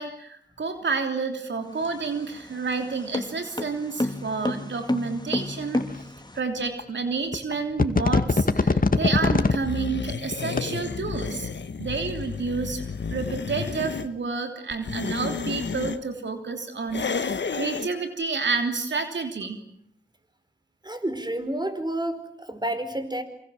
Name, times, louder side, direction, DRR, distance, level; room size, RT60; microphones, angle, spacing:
voice 1, 0.0-5.8 6.3-11.5 11.8-12.8 13.1-19.6, right 4 dB, 85° right, 5 dB, 3.2 m, -29 dB
sound 1, 1.6-6.4, left 1 dB, 25° left, 2.6 m, -31 dB
sound 2, 5.8-5.9 6.8-6.9 7.3-7.5 7.8-9.6 10.3-10.6, left 3 dB, 50° left, 2.1 m, -21 dB
sound 3, 9.6-14.1 14.7-16.0 16.9-17.9, left 5 dB, 80° left, 1.5 m, -31 dB
voice 2, 20.8-23.2, right 1 dB, 25° right, 10 dB, 4.8 m, -30 dB
27.0 x 25.0 x 7.7 m, 0.69 s
cardioid pair, 40°, 18 cm